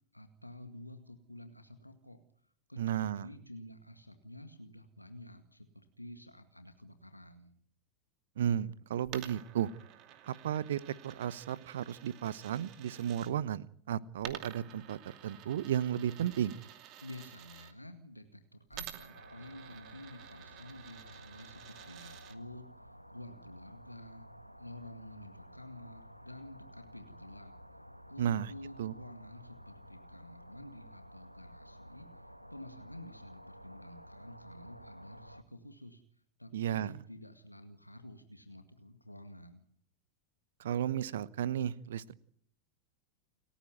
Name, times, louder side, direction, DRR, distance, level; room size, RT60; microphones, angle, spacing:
voice 1, 0.1-7.5 17.0-24.3 24.6-27.6 28.1-36.0 36.4-39.6, left 1 dB, 85° left, 7 dB, 2.0 m, -50 dB
voice 2, 2.8-3.3 8.4-9.7 10.2-16.6 28.2-28.5 28.8-28.9 36.5-37.0 40.6-42.1, right 10 dB, 60° right, 20 dB, 1.0 m, -34 dB
Coin (dropping), 9.0-13.3 14.2-17.7 18.7-22.4, right 11 dB, 40° right, 2.5 m, -51 dB
sound 1, 19.1-35.4, equal, 90° right, 1.3 m, -53 dB
30.0 x 15.0 x 9.4 m, 0.64 s
figure-of-eight pair, 90°, 0 cm